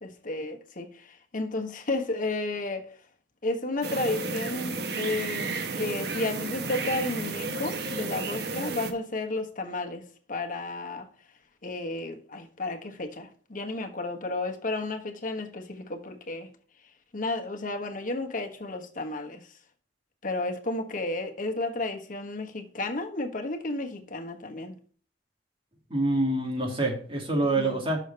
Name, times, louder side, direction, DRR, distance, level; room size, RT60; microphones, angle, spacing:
voice 1, 0.0-2.9 3.4-11.1 11.6-16.5 17.1-19.5 20.2-24.7 27.6-27.8, left 2 dB, 50° left, 1.3 m, -32 dB
sound 1, 3.8-8.9, right 3 dB, 65° right, 1.1 m, -32 dB
voice 2, 25.9-28.0, right 2 dB, 30° right, 2.4 m, -26 dB
6.4 x 5.1 x 6.8 m
head